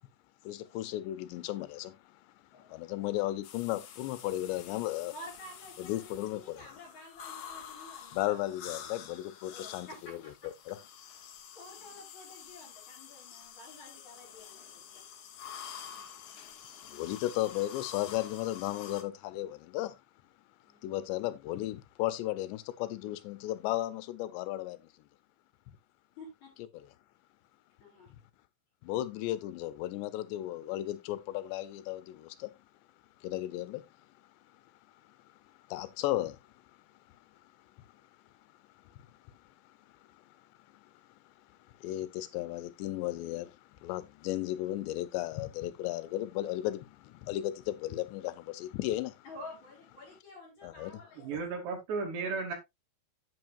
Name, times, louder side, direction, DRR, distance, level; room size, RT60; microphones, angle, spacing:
voice 1, 0.4-2.0 2.7-5.1 5.8-6.6 8.1-10.2 10.7-10.8 16.8-20.0 20.8-24.8 28.8-32.5 33.2-33.9 35.7-36.4 38.9-39.0 41.8-49.2 50.6-50.9 51.3-51.4, left 15 dB, 90° left, 3.0 m, -35 dB
voice 2, 2.5-2.9 5.1-8.4 9.4-10.5 11.6-14.7 14.9-15.0 20.6-20.9 26.2-26.5 27.8-28.1 49.2-51.3, left 1 dB, 40° left, 5.9 m, -50 dB
sound 1, 3.4-19.0, left 8 dB, 65° left, 2.1 m, -48 dB
voice 3, 51.2-52.5, right 4 dB, 75° right, 4.5 m, -34 dB
9.6 x 8.4 x 2.5 m
omnidirectional pair, 4.9 m